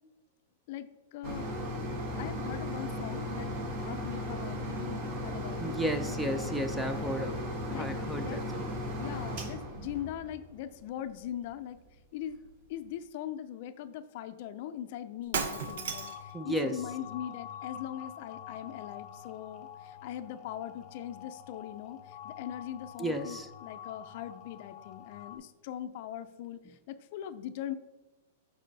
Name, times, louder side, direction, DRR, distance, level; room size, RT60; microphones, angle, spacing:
voice 1, 0.7-1.5 2.2-5.7 6.8-7.3 7.7-7.9 8.2-8.4 9.0-11.8 12.1-12.4 12.7-27.7, left 11 dB, 50° left, 11 dB, 0.5 m, -41 dB
sound 1, 1.2-10.7 11.4-11.5 11.9-12.0, left 1 dB, 40° right, 1.4 m, -36 dB
voice 2, 5.6-7.3 7.7-8.7 16.3-16.8 23.0-23.5, right 1 dB, 5° right, 8 dB, 0.4 m, -33 dB
Shatter, 15.2-16.3, right 6 dB, 75° right, 0.7 m, -34 dB
sound 2, 15.3-25.4, left 9 dB, 20° left, 0.9 m, -47 dB
7.5 x 5.0 x 4.0 m, 1.1 s
supercardioid pair, 160°, 0 cm